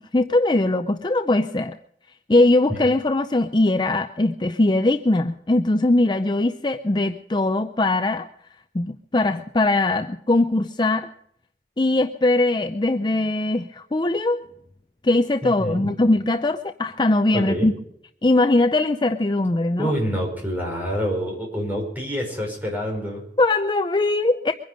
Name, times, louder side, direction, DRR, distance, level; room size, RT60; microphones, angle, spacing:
voice 1, 0.1-1.8 2.3-8.3 8.7-11.1 11.8-14.4 15.0-17.7 18.2-19.9 23.4-24.5, left 2 dB, 25° left, 8 dB, 0.5 m, -21 dB
voice 2, 15.4-15.9 17.3-17.7 19.8-23.2, equal, 10° right, 0 dB, 5.3 m, -27 dB
23.5 x 10.5 x 5.2 m, 0.71 s
head